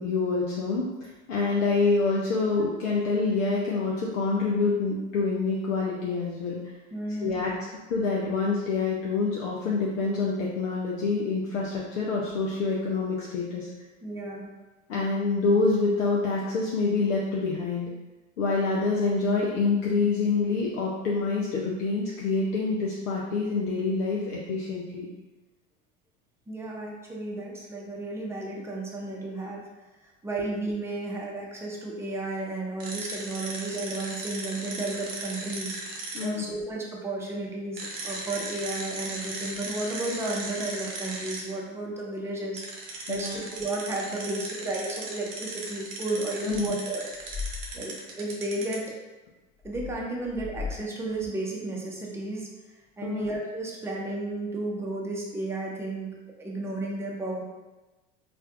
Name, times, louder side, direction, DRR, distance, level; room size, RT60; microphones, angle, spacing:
voice 1, 0.0-6.6 7.2-13.7 14.9-17.9 18.4-25.1 36.1-36.4 43.1-43.4 46.5-46.8 53.0-53.3, left 4 dB, 80° left, -4 dB, 0.6 m, -26 dB
voice 2, 6.9-7.6 14.0-14.5 26.5-29.6 30.2-47.1 47.7-48.9 49.6-52.5 53.0-56.1 56.4-57.4, right 2 dB, 5° right, -3 dB, 0.7 m, -33 dB
sound 1, 32.8-36.2 37.8-41.4 42.6-48.8, right 3 dB, 80° right, 0.9 m, -37 dB
sound 2, 47.2-47.8 49.6-50.8 51.1-51.3, left 5 dB, 20° left, 0.8 m, -36 dB
4.2 x 2.5 x 2.4 m, 1.1 s
hypercardioid pair, 80°, 39 cm